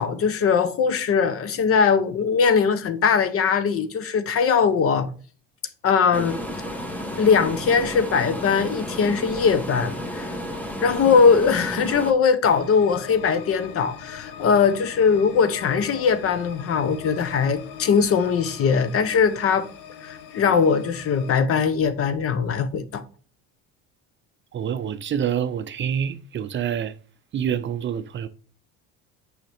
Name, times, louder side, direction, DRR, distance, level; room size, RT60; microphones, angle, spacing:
voice 1, 0.0-5.1 5.8-6.4 7.2-10.3 10.8-19.7 20.0-23.0, left 6 dB, 40° left, 0.8 m, -20 dB
sound 1, 6.1-12.1, equal, 5° left, 1.0 m, -32 dB
sound 2, 12.4-21.3, left 8 dB, 70° left, 0.9 m, -41 dB
voice 2, 24.5-26.9 27.3-28.3, right 8 dB, 35° right, 0.5 m, -27 dB
6.4 x 4.9 x 3.4 m
cardioid pair, 115°, 34 cm